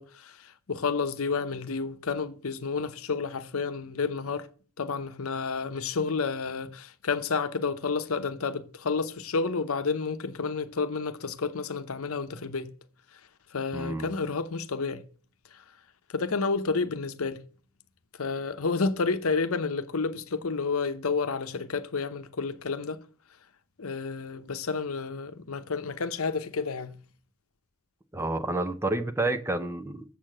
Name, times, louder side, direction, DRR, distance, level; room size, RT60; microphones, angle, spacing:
voice 1, 0.0-4.5 4.8-12.7 13.5-15.0 15.5-15.6 16.1-17.4 18.2-23.0 23.8-27.0, left 4 dB, 80° left, 0.8 m, -30 dB
voice 2, 13.7-14.1 28.1-30.0, right 2 dB, 10° right, 0.6 m, -29 dB
7.4 x 6.6 x 7.5 m
head